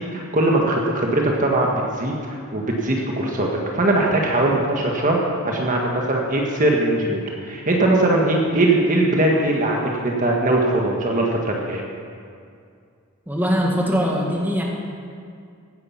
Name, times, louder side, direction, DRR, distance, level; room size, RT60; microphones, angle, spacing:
voice 1, 0.0-5.2 5.4-11.8, right 1 dB, 35° right, -1 dB, 1.5 m, -20 dB
voice 2, 13.3-14.6, equal, 10° right, -2 dB, 1.8 m, -21 dB
16.0 x 9.9 x 6.0 m, 2.3 s
head